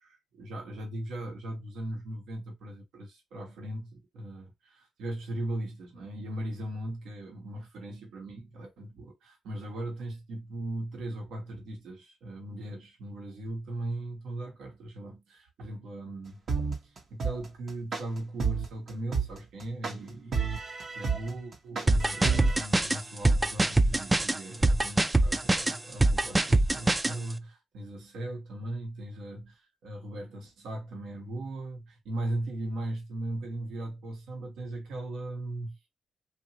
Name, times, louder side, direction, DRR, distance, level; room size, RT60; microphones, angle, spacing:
voice 1, 0.0-16.5 16.8-20.5 20.9-35.8, right 1 dB, 85° right, 1.1 m, -38 dB
sound 1, 16.5-22.6, right 5 dB, 60° right, 0.8 m, -30 dB
sound 2, 21.9-27.1, right 2 dB, 15° right, 0.3 m, -24 dB
2.9 x 2.6 x 2.8 m
cardioid pair, 95°, 0 cm